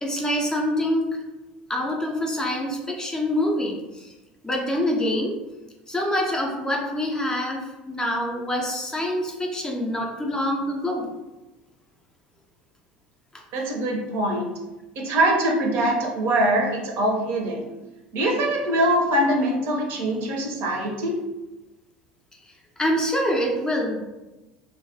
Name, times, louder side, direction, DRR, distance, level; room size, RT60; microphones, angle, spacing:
voice 1, 0.0-1.2 1.7-4.1 4.4-5.4 5.9-11.1 13.3-13.4 22.8-24.0, left 1 dB, 15° left, 0 dB, 0.5 m, -25 dB
voice 2, 13.5-14.5 15.0-17.7 18.1-21.2, right 1 dB, 50° right, 1 dB, 0.6 m, -23 dB
2.3 x 2.2 x 2.6 m, 1.1 s
figure-of-eight pair, 70°, 5 cm